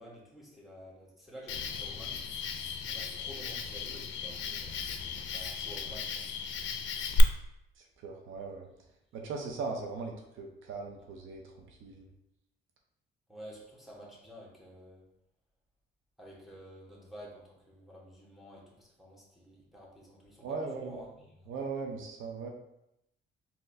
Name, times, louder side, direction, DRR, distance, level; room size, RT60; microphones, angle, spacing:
voice 1, 0.0-2.2 2.5-6.3 13.3-15.1 16.2-21.5, equal, ahead, -5 dB, 1.2 m, -51 dB
Cricket, 1.5-7.2, left 7 dB, 70° left, 0.4 m, -36 dB
voice 2, 7.8-8.7 9.1-12.1 20.4-21.0 21.5-22.5, right 4 dB, 80° right, 2 dB, 0.6 m, -39 dB
3.9 x 2.8 x 2.6 m, 0.83 s
cardioid pair, 90°, 20 cm